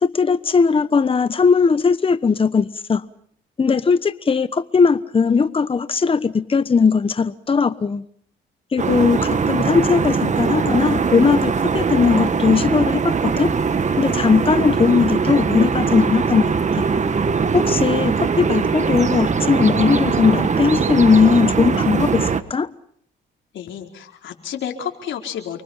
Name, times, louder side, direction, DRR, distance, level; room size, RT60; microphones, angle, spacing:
voice 1, 0.0-3.0 3.6-8.0 8.7-13.5 14.0-16.8 17.5-22.7, left 5 dB, 25° left, 13 dB, 1.1 m, -18 dB
sound 1, 8.8-22.4, right 5 dB, 35° right, 1.7 m, -21 dB
voice 2, 23.5-25.6, left 9 dB, 70° left, 2 dB, 4.7 m, -30 dB
29.5 x 24.0 x 5.8 m, 0.62 s
cardioid pair, 90°, 20 cm